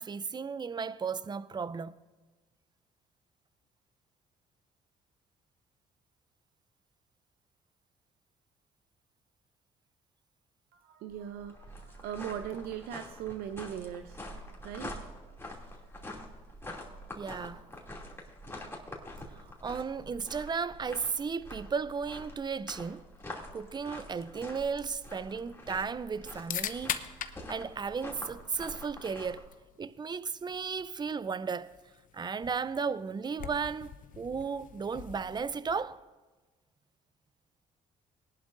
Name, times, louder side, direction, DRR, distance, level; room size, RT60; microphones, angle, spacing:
voice 1, 0.0-1.9 17.1-17.7 19.4-23.1 23.5-27.0 27.5-29.5 29.8-31.8 32.1-36.0, right 5 dB, 25° right, 0.5 m, -35 dB
voice 2, 10.7-15.0 16.4-16.5, right 9 dB, 85° right, 0.6 m, -40 dB
sound 1, 11.1-29.4, left 1 dB, 15° left, 2.6 m, -46 dB
sound 2, 24.1-36.0, left 9 dB, 60° left, 0.8 m, -44 dB
19.5 x 11.0 x 2.6 m
supercardioid pair, 75°, 16 cm